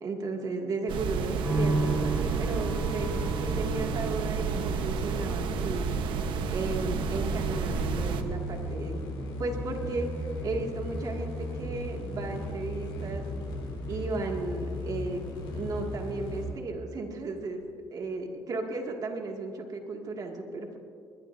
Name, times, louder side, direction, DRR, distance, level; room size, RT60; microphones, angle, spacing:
voice 1, 0.0-5.9 6.5-9.0 9.4-13.2 13.9-20.8, right 3 dB, 50° right, 2 dB, 2.1 m, -35 dB
sound 1, 0.9-8.2, right 5 dB, 80° right, 1.0 m, -31 dB
sound 2, 1.4-16.7 16.9-17.8, right 3 dB, 15° right, 4.5 m, -38 dB
sound 3, 7.0-16.5, left 1 dB, 90° left, 4.2 m, -36 dB
22.0 x 21.5 x 2.7 m, 2.4 s
cardioid pair, 110°, 8 cm